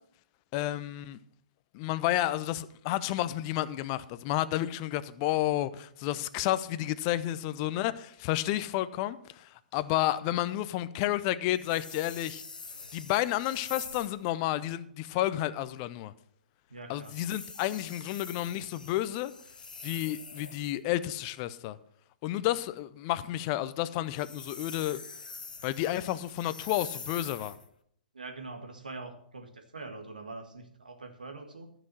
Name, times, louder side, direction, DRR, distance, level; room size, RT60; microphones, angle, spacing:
voice 1, 0.5-1.2 1.7-12.4 12.9-16.1 16.9-19.3 19.8-21.8 22.2-25.0 25.6-27.5, left 14 dB, 35° left, 0.6 m, -31 dB
sound 1, 11.5-14.2 17.0-20.8 24.0-27.7, left 4 dB, 75° left, 1.1 m, -45 dB
voice 2, 16.7-17.2 28.1-31.7, right 3 dB, 80° right, 1.7 m, -44 dB
12.5 x 6.0 x 6.2 m
figure-of-eight pair, 115°, 4 cm